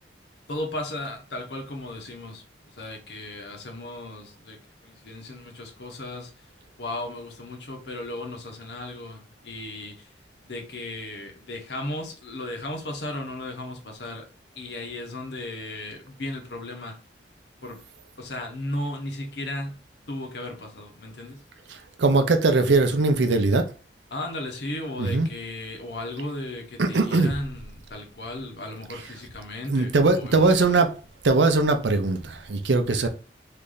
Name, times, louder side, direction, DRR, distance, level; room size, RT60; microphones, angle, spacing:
voice 1, 0.5-6.3 6.8-10.1 10.4-14.3 14.5-17.0 17.6-17.8 18.2-19.8 20.1-21.4 24.1-30.9 32.9-33.1, left 1 dB, 70° left, 1.0 m, -35 dB
voice 2, 22.0-23.7 25.0-25.3 26.8-27.3 29.7-30.9 31.2-33.1, right 3 dB, 90° right, 0.6 m, -20 dB
3.3 x 2.6 x 3.8 m
head